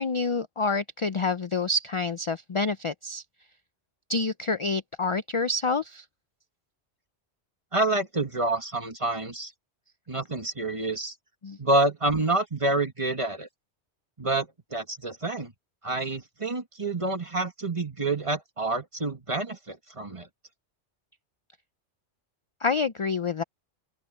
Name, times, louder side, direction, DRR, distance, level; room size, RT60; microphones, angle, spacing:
voice 1, 0.0-3.2 4.1-6.0 11.4-11.6 22.6-23.4, left 3 dB, 45° left, 0.4 m, -27 dB
voice 2, 7.7-9.5 10.1-11.1 11.6-13.5 14.2-15.5 15.8-20.3, right 2 dB, 25° right, 1.9 m, -28 dB
open air
omnidirectional pair, 1.2 m